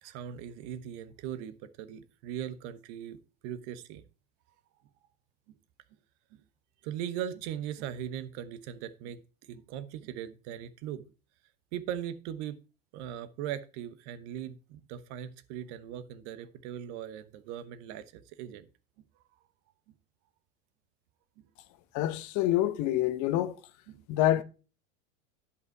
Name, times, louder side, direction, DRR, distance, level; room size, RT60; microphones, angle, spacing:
voice 1, 0.0-3.2 3.4-4.0 6.8-9.2 9.5-11.1 11.7-12.6 12.9-18.7 23.9-24.0, right 10 dB, 55° right, 1.1 m, -39 dB
voice 2, 21.9-23.6 24.1-24.4, left 13 dB, 45° left, 1.0 m, -26 dB
10.5 x 5.7 x 4.5 m
hypercardioid pair, 100°, 41 cm